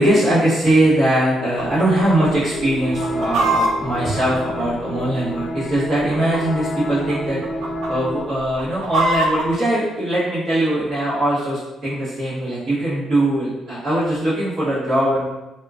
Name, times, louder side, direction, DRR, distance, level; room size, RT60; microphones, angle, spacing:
voice 1, 0.0-7.4 7.9-15.2, right 1 dB, 45° right, -12 dB, 1.2 m, -20 dB
sound 1, 1.4-8.3, equal, 50° left, 0.4 m, -29 dB
Chicken rooster, 1.6-2.0 2.3-2.4 2.8-5.1 5.8-6.6 6.9-7.1 7.4-7.9 8.4-9.5, right 2 dB, 70° right, 0.4 m, -23 dB
3.5 x 2.8 x 2.4 m, 1.0 s
cardioid pair, 145°, 0 cm